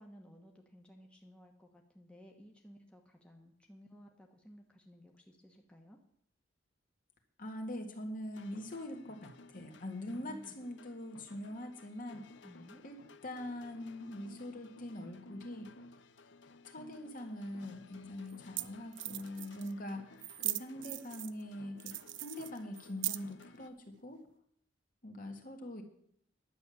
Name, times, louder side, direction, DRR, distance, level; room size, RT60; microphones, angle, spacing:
voice 1, 0.0-6.0 10.0-10.6 12.4-12.8 19.6-20.1, equal, 5° left, 1 dB, 1.1 m, -55 dB
voice 2, 7.4-12.3 12.8-15.7 16.6-24.2 25.0-25.8, left 1 dB, 50° left, 4 dB, 1.8 m, -43 dB
sound 1, 8.3-23.7, left 3 dB, 75° left, 0.7 m, -56 dB
sound 2, 17.5-17.6 18.3-18.4 18.6-18.7 18.9-19.7 20.2-21.4 21.8-23.4, right 17 dB, 80° right, 0.5 m, -39 dB
10.5 x 8.1 x 6.9 m, 0.68 s
head